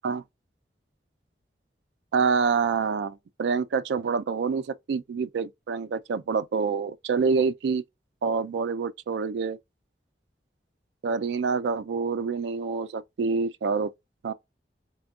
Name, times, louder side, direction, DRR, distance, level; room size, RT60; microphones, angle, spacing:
voice 1, 2.1-7.8 8.2-9.6 11.0-13.9 14.2-14.3, right 5 dB, 85° right, 0.3 m, -27 dB
4.3 x 2.2 x 2.3 m
head